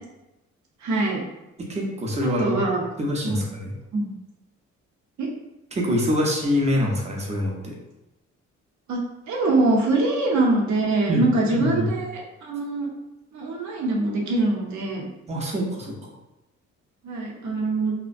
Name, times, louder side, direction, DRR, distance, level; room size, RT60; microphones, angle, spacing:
voice 1, 0.8-1.2 2.2-2.8 3.2-3.4 3.9-4.1 5.2-5.3 8.9-9.0 9.3-12.9 13.3-15.1 17.0-17.9, right 2 dB, 70° right, -2 dB, 0.7 m, -23 dB
voice 2, 1.6-2.6 3.0-3.7 5.7-7.8 11.1-11.3 11.6-11.9 15.3-16.1, left 1 dB, 20° right, -1 dB, 0.6 m, -25 dB
2.5 x 2.1 x 2.4 m, 0.97 s
cardioid pair, 90°, 30 cm